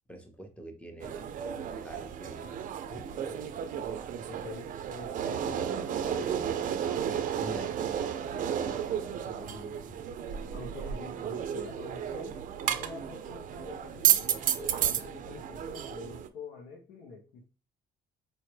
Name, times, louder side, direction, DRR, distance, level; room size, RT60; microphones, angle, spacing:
voice 1, 0.1-1.3 1.7-2.5 2.9-3.1 7.4-7.9 8.7-9.2, right 1 dB, 5° left, 6 dB, 0.8 m, -46 dB
sound 1, 1.0-16.3, right 9 dB, 50° right, 0.4 m, -32 dB
voice 2, 2.9-3.4 4.3-6.6 8.3-10.0 10.5-17.4, left 4 dB, 90° left, -1 dB, 1.0 m, -46 dB
4.7 x 2.2 x 3.1 m, 0.34 s
cardioid pair, 110°, 17 cm